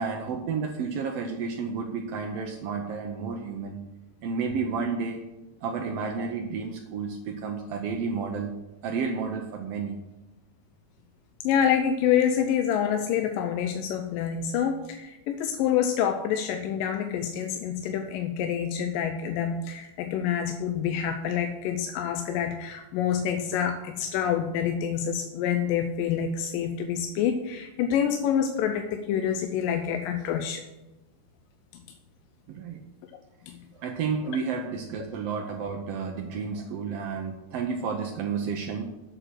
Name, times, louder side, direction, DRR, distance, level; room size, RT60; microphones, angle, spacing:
voice 1, 0.0-3.8 4.2-5.2 5.6-8.5 8.8-9.9 32.5-32.8 33.7-38.9, right 5 dB, 80° right, 3 dB, 1.4 m, -31 dB
voice 2, 11.4-30.6 33.5-33.6, left 8 dB, 90° left, 6 dB, 2.3 m, -27 dB
8.0 x 7.8 x 6.2 m, 0.99 s
omnidirectional pair, 3.8 m